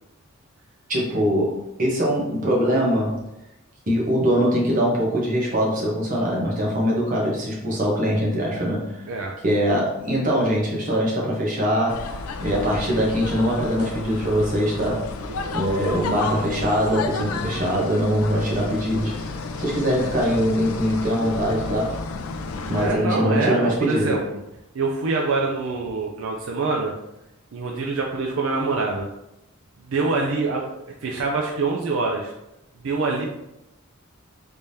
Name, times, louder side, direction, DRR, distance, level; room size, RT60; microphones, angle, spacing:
voice 1, 0.9-3.2 3.9-9.1 9.4-15.1 15.5-22.0 22.7-24.2, equal, 40° right, -3 dB, 1.0 m, -22 dB
sound 1, 11.9-23.0, left 3 dB, 85° left, 0.4 m, -32 dB
voice 2, 15.3-15.6 22.7-24.2 24.7-26.9 27.5-29.1 29.9-30.6 31.0-32.3 32.8-33.3, right 3 dB, 65° right, 0 dB, 0.4 m, -25 dB
3.4 x 3.4 x 2.7 m, 0.89 s
head